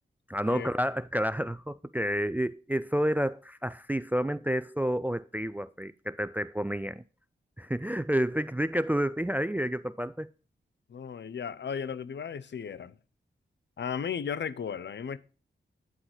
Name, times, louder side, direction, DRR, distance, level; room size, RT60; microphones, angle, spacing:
voice 1, 0.3-7.0 7.6-10.3, equal, 10° right, 0.3 m, -30 dB
voice 2, 10.9-13.0 13.8-15.2, left 7 dB, 60° left, 0.6 m, -35 dB
9.6 x 4.0 x 6.0 m
cardioid pair, 65°, 20 cm